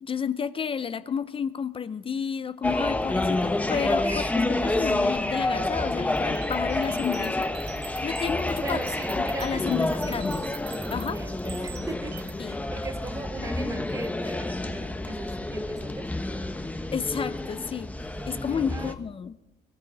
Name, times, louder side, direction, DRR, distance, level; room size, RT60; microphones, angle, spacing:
voice 1, 0.0-4.2 4.5-7.5 8.0-8.8 9.2-10.4 10.9-11.2 12.4-12.6 16.9-17.9 18.3-19.3, left 7 dB, 30° left, 14 dB, 0.6 m, -31 dB
sound 1, 2.6-18.9, left 2 dB, 10° left, 1.0 m, -29 dB
voice 2, 4.0-4.5 8.6-10.2 10.8-12.2 12.4-16.1 18.1-19.0, right 3 dB, 20° right, 13 dB, 0.7 m, -39 dB
sound 2, 6.1-12.3, right 10 dB, 80° right, 1.3 m, -45 dB
23.0 x 12.5 x 4.1 m, 1.0 s
cardioid pair, 110°, 17 cm